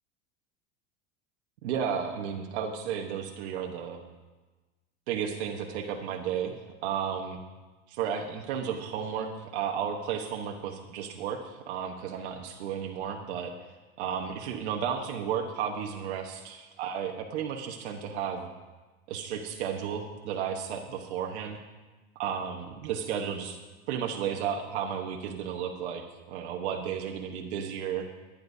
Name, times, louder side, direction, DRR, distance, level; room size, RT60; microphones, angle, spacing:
voice 1, 1.6-4.0 5.1-6.6 6.8-7.4 7.9-13.5 14.0-18.5 19.1-21.6 22.1-23.6 23.9-28.1, right 8 dB, 85° right, 2 dB, 1.2 m, -33 dB
22.5 x 9.9 x 2.7 m, 1.2 s
supercardioid pair, 110°, 33 cm